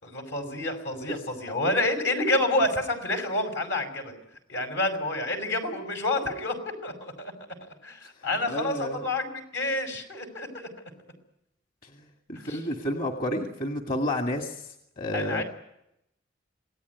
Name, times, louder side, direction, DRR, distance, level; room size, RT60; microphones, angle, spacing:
voice 1, 0.0-4.1 4.5-6.5 6.8-7.3 7.6-10.7 12.4-12.6 15.1-15.4, left 2 dB, 75° left, 6 dB, 5.8 m, -29 dB
voice 2, 8.5-9.0 11.8-11.9 12.3-14.7 15.0-15.4, left 1 dB, 50° left, 4 dB, 2.2 m, -30 dB
27.0 x 18.5 x 9.6 m, 0.84 s
head